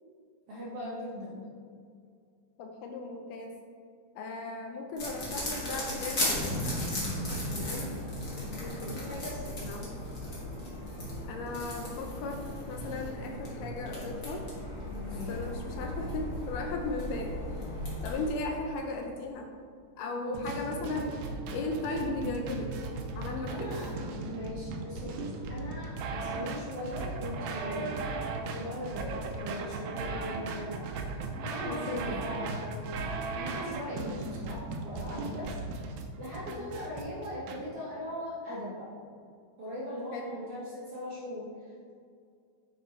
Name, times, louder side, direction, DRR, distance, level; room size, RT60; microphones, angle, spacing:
voice 1, 0.5-1.5 7.2-7.9 8.8-9.4 14.9-15.4 20.2-21.1 23.5-28.0 28.4-31.0 31.3-33.0 33.3-35.6 36.2-38.9 39.6-41.9, left 1 dB, 60° right, -7 dB, 1.7 m, -40 dB
voice 2, 2.6-3.6 4.2-6.8 8.5-9.0 9.6-10.0 11.3-14.5 15.3-17.4 18.0-19.5 20.0-21.2 21.5-22.7 23.2-23.7 31.7-32.2 34.1-34.3 36.5-36.7 40.1-40.3, left 3 dB, 80° left, 3 dB, 2.0 m, -37 dB
sound 1, 5.0-18.3, left 1 dB, 55° left, 0.9 m, -37 dB
sound 2, 6.1-14.6 14.9-15.0 15.3-15.4 15.6-16.1 17.8-17.9 18.7-18.8, equal, 40° right, 1.7 m, -41 dB
sound 3, 20.3-37.6, right 3 dB, 85° right, 1.7 m, -37 dB
8.4 x 3.4 x 4.3 m, 2.2 s
omnidirectional pair, 4.0 m